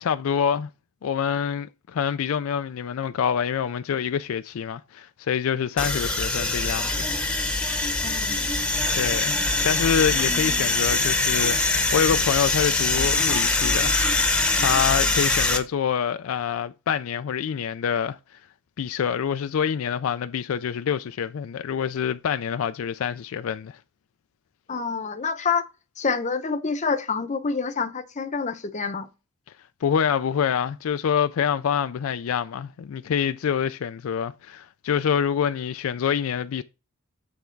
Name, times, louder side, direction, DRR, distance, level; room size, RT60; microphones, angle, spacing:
voice 1, 0.0-0.7 1.0-6.9 8.9-9.4 9.6-14.0 14.6-18.2 18.8-23.8 29.8-36.6, left 7 dB, 75° left, 0.4 m, -26 dB
sound 1, 5.8-15.6, left 2 dB, 5° left, 0.9 m, -23 dB
voice 2, 8.0-8.4 24.7-25.6 26.0-29.1, left 5 dB, 35° left, 0.7 m, -27 dB
9.2 x 3.4 x 4.5 m
head